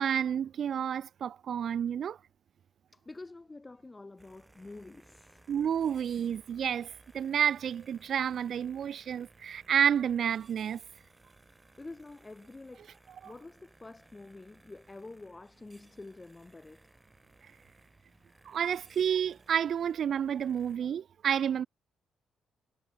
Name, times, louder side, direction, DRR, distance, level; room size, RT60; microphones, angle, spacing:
voice 1, 0.0-2.2 5.5-6.9 7.1-10.8 18.5-21.7, right 8 dB, 60° right, 0.3 m, -30 dB
voice 2, 2.9-5.5 11.5-13.0 13.2-17.0, left 2 dB, 20° left, 3.2 m, -48 dB
sound 1, 4.2-20.8, right 2 dB, 15° right, 6.9 m, -61 dB
cardioid pair, 90°, 0 cm